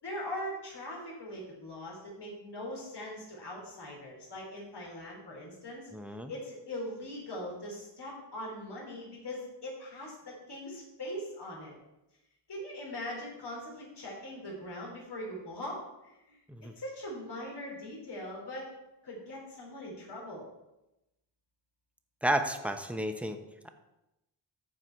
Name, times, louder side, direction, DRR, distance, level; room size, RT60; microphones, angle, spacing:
voice 1, 0.0-5.9 6.3-11.8 12.5-16.4 16.8-18.7 19.0-20.5, left 1 dB, 60° left, -3 dB, 3.5 m, -41 dB
voice 2, 5.9-6.3 16.5-16.7 22.2-23.7, right 1 dB, 5° right, 6 dB, 1.0 m, -32 dB
14.0 x 4.8 x 4.5 m, 0.94 s
cardioid pair, 60°, 45 cm